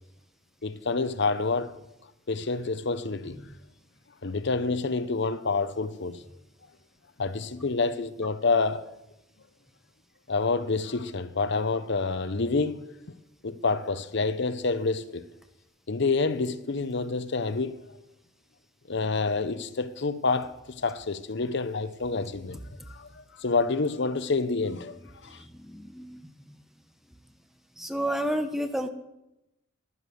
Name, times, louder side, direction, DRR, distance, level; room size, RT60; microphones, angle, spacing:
voice 1, 0.6-1.7 2.3-3.4 4.2-6.2 7.2-8.8 10.3-12.8 13.4-15.2 15.9-17.8 18.9-22.6 22.9-25.4, left 3 dB, 60° left, 0.8 m, -28 dB
voice 2, 25.7-26.2 27.8-28.9, equal, ahead, 0.7 m, -30 dB
11.0 x 11.0 x 6.9 m
head